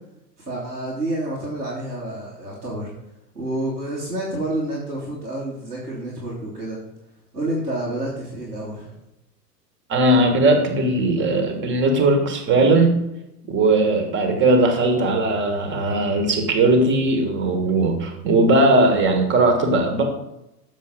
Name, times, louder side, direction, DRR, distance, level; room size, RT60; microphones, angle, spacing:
voice 1, 0.4-2.9 3.3-6.8 7.3-8.9, right 1 dB, 85° right, -7 dB, 2.9 m, -29 dB
voice 2, 9.9-12.9 13.5-20.0, right 2 dB, 25° right, 4 dB, 1.9 m, -18 dB
7.7 x 6.7 x 5.2 m, 0.88 s
figure-of-eight pair, 95°, 49 cm